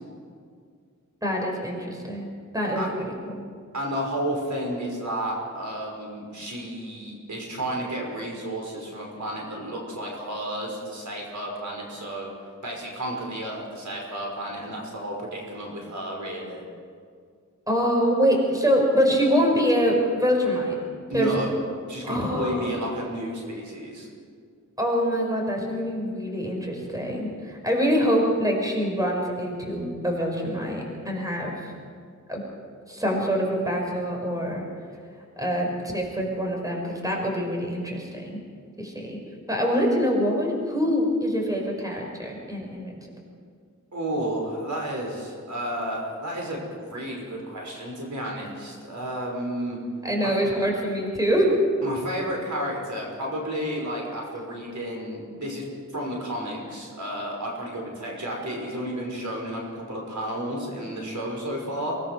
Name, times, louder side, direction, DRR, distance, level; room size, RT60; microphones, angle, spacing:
voice 1, 1.2-3.4 17.7-20.8 21.1-21.3 22.0-22.7 24.8-31.7 32.3-32.4 32.9-34.7 35.4-38.4 38.8-39.2 39.5-43.0 50.0-51.5, equal, 10° right, 0 dB, 5.4 m, -25 dB
voice 2, 3.7-12.3 12.6-16.6 21.1-21.5 21.9-24.1 43.9-49.8 50.2-50.3 51.8-55.6 55.9-61.9, right 1 dB, 70° right, -1 dB, 5.7 m, -32 dB
24.5 x 19.5 x 6.3 m, 2.1 s
wide cardioid pair, 80°, 31 cm